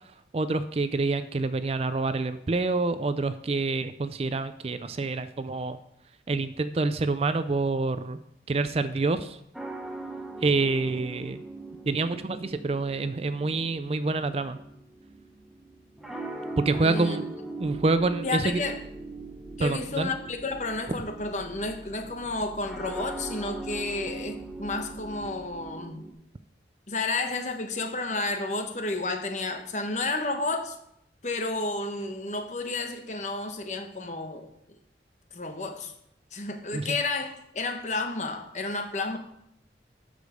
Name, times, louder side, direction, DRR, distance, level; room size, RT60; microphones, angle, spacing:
voice 1, 0.3-5.8 6.3-8.2 8.5-9.4 10.4-11.4 11.9-14.6 16.6-17.2 17.6-18.6 19.6-20.1 36.7-37.0, right 3 dB, 35° right, 0.4 m, -27 dB
sound 1, 9.5-26.1, right 3 dB, ahead, 0.9 m, -41 dB
voice 2, 16.8-17.2 18.2-18.8 19.6-26.1 26.9-30.8 31.2-34.5 35.3-35.9 36.3-39.2, left 3 dB, 40° left, 1.0 m, -31 dB
sound 2, 17.6-25.7, right 2 dB, 70° right, 1.0 m, -49 dB
13.0 x 5.1 x 5.0 m
head